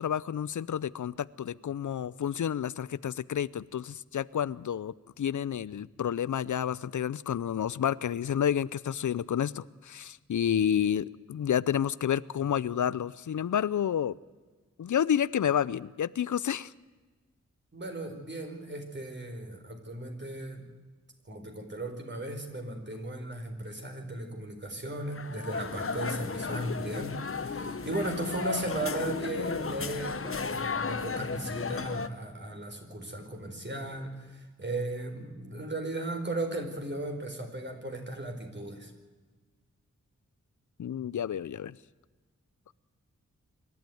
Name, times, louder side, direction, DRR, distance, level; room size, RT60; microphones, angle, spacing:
voice 1, 0.0-14.2 14.8-16.7 40.8-41.8, left 9 dB, 80° left, 19 dB, 0.6 m, -30 dB
voice 2, 17.7-20.7 21.3-38.9, right 1 dB, 40° right, 4 dB, 4.5 m, -36 dB
sound 1, 25.1-32.1, left 4 dB, 45° left, 1.2 m, -34 dB
26.0 x 12.5 x 9.2 m, 1.3 s
wide cardioid pair, 75°, 29 cm